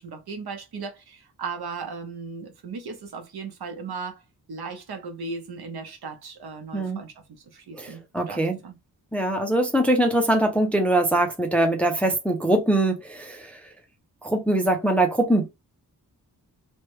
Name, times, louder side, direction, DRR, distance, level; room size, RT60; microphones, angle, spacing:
voice 1, 0.0-4.2 4.5-7.1 7.5-8.8, right 4 dB, 75° right, 0.9 m, -36 dB
voice 2, 7.8-8.6 9.1-13.6 14.2-15.5, right 1 dB, 5° left, 0.4 m, -22 dB
3.2 x 2.1 x 3.0 m
wide cardioid pair, 180°, 39 cm